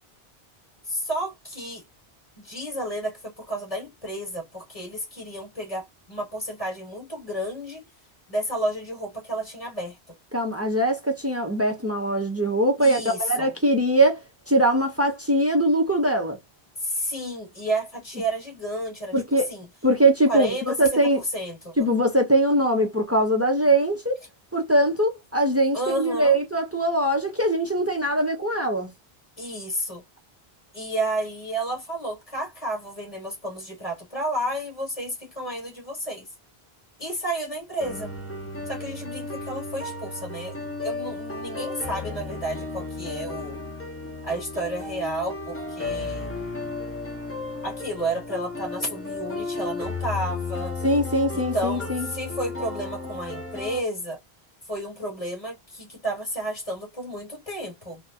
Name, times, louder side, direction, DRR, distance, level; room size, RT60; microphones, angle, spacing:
voice 1, 0.9-1.8 2.4-7.8 8.3-10.2 12.8-13.5 16.8-19.7 20.3-21.9 25.7-26.4 29.4-30.0 30.7-36.3 37.0-38.1 38.7-40.5 40.8-43.6 44.2-46.3 47.6-50.7 51.3-54.2 54.7-58.0, right 1 dB, 35° left, 2.3 m, -31 dB
voice 2, 10.3-16.4 19.1-19.5 19.8-21.2 21.8-24.2 24.5-28.9 50.8-52.1, right 1 dB, 15° right, 0.7 m, -22 dB
sound 1, 37.8-53.8, left 3 dB, 15° left, 0.8 m, -34 dB
3.8 x 2.3 x 2.8 m
omnidirectional pair, 1.0 m